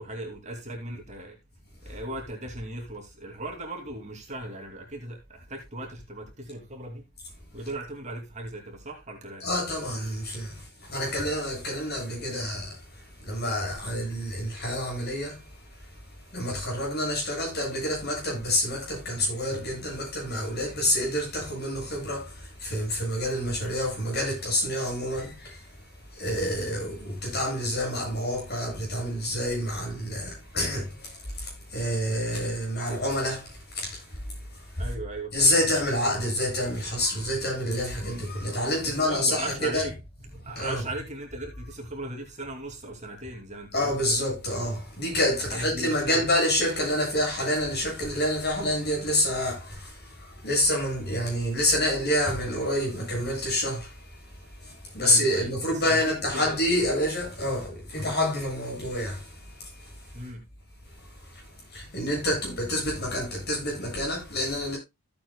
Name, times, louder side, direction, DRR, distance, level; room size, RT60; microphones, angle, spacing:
voice 1, 0.0-1.4 1.8-7.0 7.5-9.5 34.8-35.5 38.8-39.9 40.3-44.2 45.5-46.3 55.0-56.6 60.1-60.4, right 1 dB, 30° right, 2.6 m, -37 dB
voice 2, 9.4-12.8 13.2-15.4 16.3-25.6 26.2-34.0 35.3-39.9 40.6-40.8 43.7-53.9 54.6-59.3 59.6-59.7 61.7-64.8, left 1 dB, 45° left, 7.2 m, -28 dB
15.0 x 8.5 x 2.2 m
head